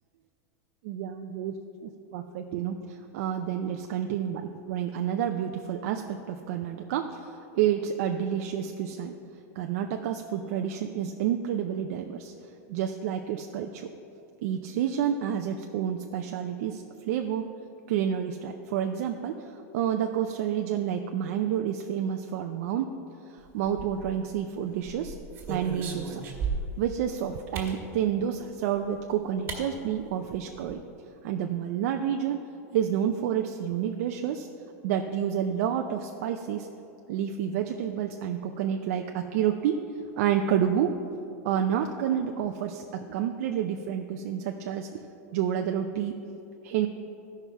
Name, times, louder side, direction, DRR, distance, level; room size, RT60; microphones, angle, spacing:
voice 1, 0.8-9.1 9.6-12.3 12.7-13.9 14.4-17.5 17.9-19.3 19.7-22.9 23.5-25.2 25.5-26.2 26.8-30.8 31.2-32.5 32.7-34.5 34.8-36.7 37.1-39.8 40.2-40.9 41.4-45.0 45.3-46.1 46.6-46.9, right 9 dB, 60° right, 4 dB, 0.5 m, -29 dB
sound 1, 23.6-24.3 24.9-26.9 27.5-27.8 28.9-29.0 29.5-29.6 30.0-30.1 30.3-30.7, right 5 dB, 30° right, 1.8 m, -35 dB
14.0 x 5.7 x 4.6 m, 2.8 s
supercardioid pair, 140°, 9 cm